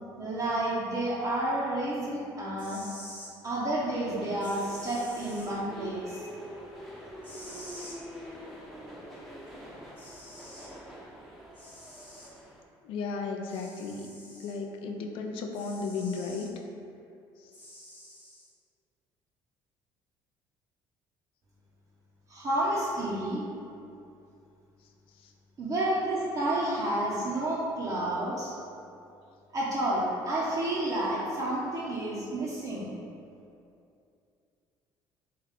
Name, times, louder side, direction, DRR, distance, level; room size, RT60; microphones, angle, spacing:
voice 1, 0.2-2.9 3.4-6.3 22.3-23.4 25.6-28.5 29.5-32.9, right 1 dB, 35° right, -7 dB, 0.6 m, -30 dB
sound 1, 2.4-3.3 4.4-5.5 7.2-8.0 9.5-9.6 10.0-10.7 11.5-12.3 13.5-14.6 15.5-16.5 17.5-18.5, left 1 dB, 20° left, 1.0 m, -48 dB
sound 2, 3.8-12.6, equal, ahead, 0.6 m, -45 dB
voice 2, 12.8-14.1 14.4-16.5 17.4-17.5 25.2-25.3, left 4 dB, 70° left, 3 dB, 0.4 m, -34 dB
3.5 x 2.3 x 3.4 m, 2.6 s
cardioid pair, 100°, 9 cm